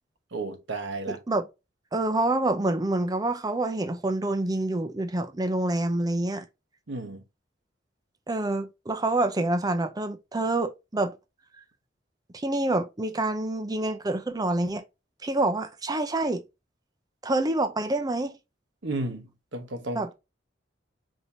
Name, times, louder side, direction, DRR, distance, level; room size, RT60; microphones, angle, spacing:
voice 1, 0.3-1.2 6.9-7.2 18.8-20.1, right 2 dB, 85° right, 1.0 m, -33 dB
voice 2, 1.1-1.5 1.9-6.5 8.3-11.1 12.3-14.8 15.2-16.4 17.2-18.3 20.0-20.1, right 2 dB, 20° right, 0.5 m, -27 dB
5.0 x 2.8 x 2.7 m
head